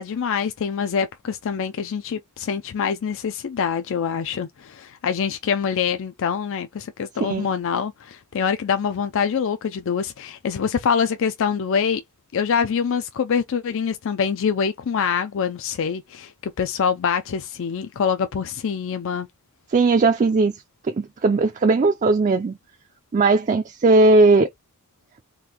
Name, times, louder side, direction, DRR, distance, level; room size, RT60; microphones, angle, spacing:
voice 1, 0.0-12.0 12.3-16.3 16.6-19.3, left 6 dB, 60° left, 0.4 m, -25 dB
voice 2, 19.7-22.6 23.1-24.5, right 3 dB, 35° right, 0.4 m, -18 dB
3.7 x 2.5 x 2.8 m
head